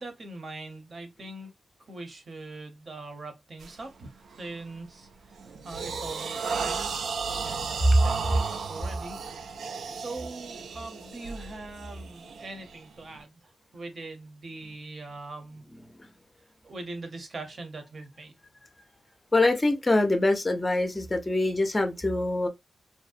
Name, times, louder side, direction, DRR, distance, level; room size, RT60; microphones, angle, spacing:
voice 1, 0.0-1.5 1.9-5.4 5.6-6.9 7.3-9.2 9.9-15.8 16.6-18.3, right 2 dB, 45° right, 0.8 m, -42 dB
sound 1, 3.6-3.8 4.3-4.6 5.1-13.2, right 5 dB, 85° right, 0.3 m, -35 dB
voice 2, 19.3-22.5, left 2 dB, 20° left, 0.5 m, -24 dB
2.6 x 2.0 x 2.4 m
wide cardioid pair, 130°, 0 cm